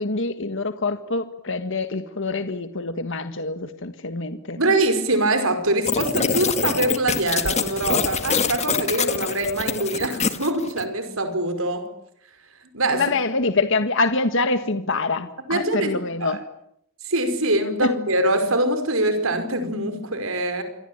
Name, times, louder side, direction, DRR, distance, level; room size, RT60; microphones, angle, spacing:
voice 1, 0.0-4.6 12.9-16.4 17.8-17.9, left 3 dB, 65° left, 1.7 m, -25 dB
voice 2, 4.6-11.9 12.7-13.0 15.5-16.4 17.0-20.6, right 1 dB, 80° right, 5.3 m, -23 dB
sound 1, 5.8-10.8, left 5 dB, 30° left, 1.9 m, -25 dB
28.0 x 24.0 x 9.0 m
head